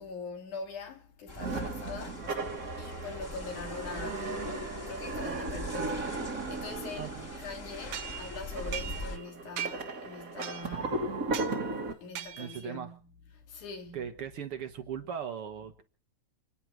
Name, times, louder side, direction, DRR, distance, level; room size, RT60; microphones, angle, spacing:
voice 1, 0.0-2.3 2.8-7.1 7.4-11.2 12.0-14.1, left 4 dB, 90° left, 3.8 m, -43 dB
sound 1, 1.3-9.2, left 1 dB, 25° left, 2.6 m, -42 dB
sound 2, 1.4-11.9, right 3 dB, 35° right, 1.7 m, -36 dB
voice 2, 7.0-7.3 12.4-12.9 13.9-15.8, right 8 dB, 60° right, 1.9 m, -38 dB
sound 3, 7.9-9.3 9.6-10.0 10.4-10.9 11.3-11.6 12.2-12.7, right 10 dB, 75° right, 2.4 m, -39 dB
30.0 x 10.0 x 4.6 m
omnidirectional pair, 3.4 m